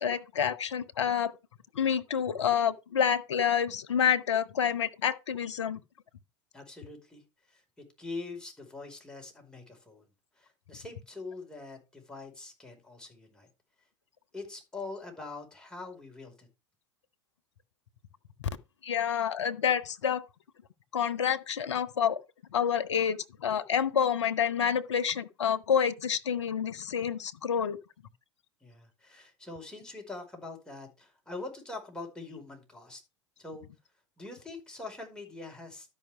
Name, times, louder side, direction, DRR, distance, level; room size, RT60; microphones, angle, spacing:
voice 1, 0.0-1.3 1.7-5.8 18.8-20.2 20.9-22.2 22.5-27.8, left 8 dB, 75° left, 1.0 m, -28 dB
voice 2, 6.5-7.2 7.5-10.0 10.4-13.5 14.3-16.5 28.6-33.0 33.4-33.7 34.2-35.9, left 3 dB, 5° left, 4.9 m, -43 dB
12.5 x 5.6 x 5.0 m
figure-of-eight pair, 85°, 15 cm